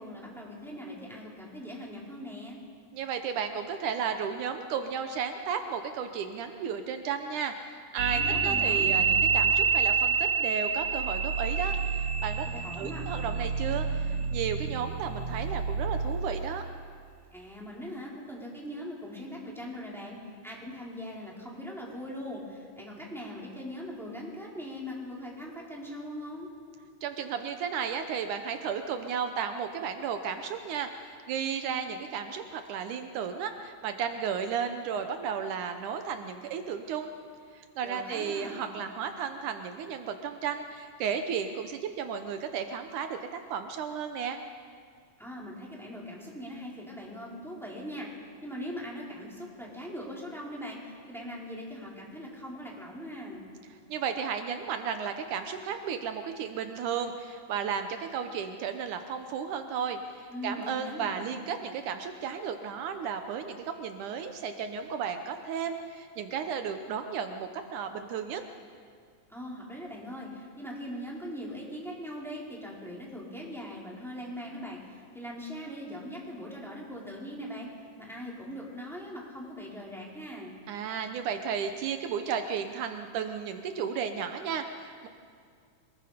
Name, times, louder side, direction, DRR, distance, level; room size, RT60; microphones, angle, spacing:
voice 1, 0.0-2.6 8.1-8.9 12.5-13.0 17.3-20.2 20.4-26.5 37.8-38.7 45.2-48.1 48.4-53.4 60.3-61.3 69.3-77.7 78.0-80.5, equal, ahead, -4 dB, 4.2 m, -41 dB
voice 2, 2.9-12.5 12.8-16.6 27.0-37.1 37.5-44.4 53.9-68.4 80.7-85.1, right 7 dB, 75° right, 7 dB, 2.3 m, -34 dB
sound 1, 8.0-16.6, right 5 dB, 50° right, 2.3 m, -28 dB
26.0 x 20.5 x 5.1 m, 2.2 s
omnidirectional pair, 3.6 m